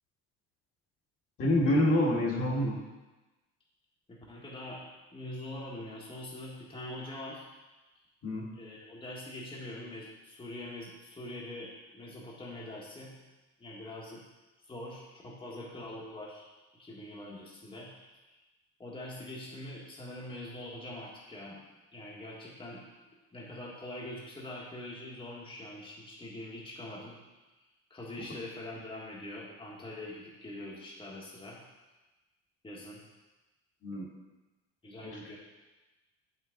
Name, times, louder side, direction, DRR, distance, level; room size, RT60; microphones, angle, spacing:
voice 1, 1.4-2.7 8.2-8.5 33.8-34.1 35.0-35.1, left 1 dB, 45° left, -3 dB, 1.9 m, -27 dB
voice 2, 4.1-4.8 5.1-7.5 8.5-13.2 13.6-14.2 14.6-16.4 16.8-18.2 18.8-21.6 21.9-22.8 23.3-27.2 27.9-31.6 32.6-33.0 34.8-35.4, left 1 dB, 15° left, -5 dB, 1.6 m, -43 dB
7.2 x 5.9 x 3.9 m, 1.1 s
supercardioid pair, 105°, 31 cm